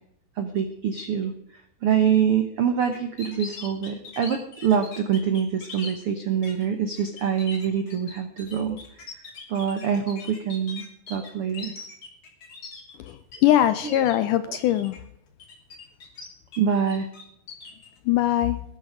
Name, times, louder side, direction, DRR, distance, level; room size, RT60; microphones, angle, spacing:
voice 1, 0.4-9.2 9.5-11.7 13.8-14.0 14.5-14.6 16.6-17.1, right 8 dB, 75° right, 8 dB, 1.3 m, -25 dB
sound 1, 2.9-5.9 6.4-6.7 7.0-13.4 13.6-14.2 14.6-15.0 15.4-16.6 16.9-17.9, left 4 dB, 45° left, 3.9 m, -41 dB
voice 2, 13.0-15.0 18.1-18.6, left 12 dB, 80° left, 12 dB, 1.9 m, -22 dB
19.5 x 10.5 x 5.0 m, 0.75 s
omnidirectional pair, 4.3 m